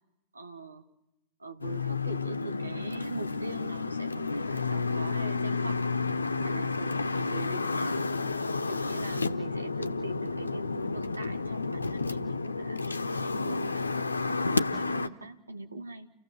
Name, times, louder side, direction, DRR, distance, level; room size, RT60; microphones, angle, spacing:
voice 1, 0.3-0.8 1.4-5.9 6.4-8.0 8.7-13.8 14.3-16.1, right 2 dB, 80° right, 8 dB, 1.2 m, -42 dB
sound 1, 1.6-15.1, left 4 dB, 80° left, 0.7 m, -31 dB
29.5 x 15.0 x 7.2 m, 0.94 s
figure-of-eight pair, 90°, 0 cm